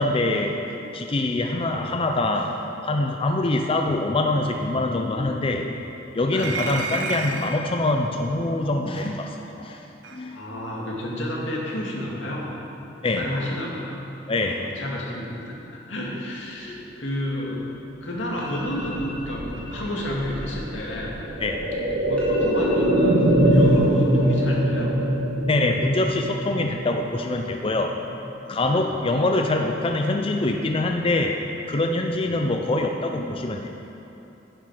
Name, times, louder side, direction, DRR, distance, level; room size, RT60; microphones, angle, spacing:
voice 1, 0.0-5.8 6.1-9.9 10.1-10.4 13.0-13.4 14.3-15.0 16.6-17.0 21.4-22.1 22.5-22.8 23.4-23.6 25.5-28.1 28.5-33.7, left 2 dB, 30° left, 3 dB, 0.5 m, -25 dB
sound 1, 6.3-7.7 9.0-9.1 10.0-10.2, right 4 dB, 85° right, 0.9 m, -31 dB
voice 2, 10.3-12.5 13.1-14.0 14.4-17.6 18.0-21.2 22.0-24.9 28.7-28.8 32.1-32.5, left 1 dB, 90° left, -3 dB, 2.2 m, -31 dB
sound 2, 18.4-19.1 19.5-19.8 20.1-21.6 21.9-22.0 22.2-23.6 23.9-24.5 24.8-25.3, left 1 dB, 5° left, 2.3 m, -42 dB
sound 3, 18.5-28.3 28.6-28.7, right 1 dB, 70° right, 1.6 m, -23 dB
11.0 x 9.8 x 4.9 m, 3.0 s
head